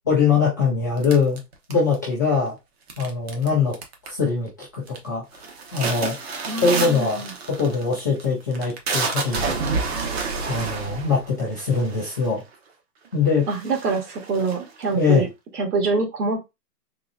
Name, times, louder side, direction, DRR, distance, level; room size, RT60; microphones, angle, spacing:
voice 1, 0.1-1.4 1.7-2.6 3.0-3.7 4.0-5.4 5.7-6.1 6.6-7.2 7.5-9.6 10.5-12.4 13.1-13.4 14.9-15.2, left 5 dB, 10° left, -9 dB, 0.5 m, -22 dB
sound 1, 1.0-2.1 2.9-3.5 3.7-4.2 4.6-5.0 5.3-12.4 13.1-13.2 13.4-15.0, right 4 dB, 40° right, 0.9 m, -29 dB
voice 2, 6.5-7.3 13.5-15.3 15.5-16.5, right 4 dB, 70° right, 3 dB, 1.9 m, -25 dB
3.9 x 3.0 x 2.5 m, 0.23 s
hypercardioid pair, 160°, 49 cm